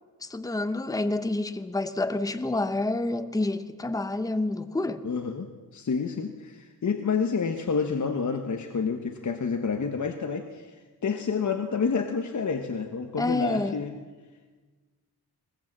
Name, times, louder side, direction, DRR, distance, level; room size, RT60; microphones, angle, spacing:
voice 1, 0.2-5.1 13.2-13.8, left 2 dB, 10° left, 0.9 m, -28 dB
voice 2, 5.0-10.8 11.0-13.9, left 5 dB, 50° left, 1.3 m, -29 dB
21.0 x 19.5 x 7.7 m
wide cardioid pair, 140°, 38 cm